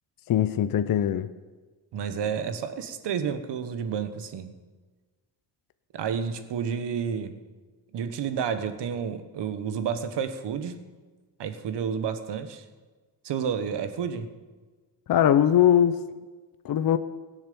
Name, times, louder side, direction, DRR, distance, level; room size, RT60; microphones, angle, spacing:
voice 1, 0.3-1.3 15.1-16.0 16.6-17.0, left 10 dB, 50° left, 11 dB, 0.6 m, -21 dB
voice 2, 1.9-4.6 5.9-7.4 7.9-10.8 11.4-12.6 13.2-14.3, right 7 dB, 70° right, 10 dB, 1.3 m, -30 dB
17.0 x 7.3 x 6.9 m, 1.3 s
cardioid pair, 110°, 44 cm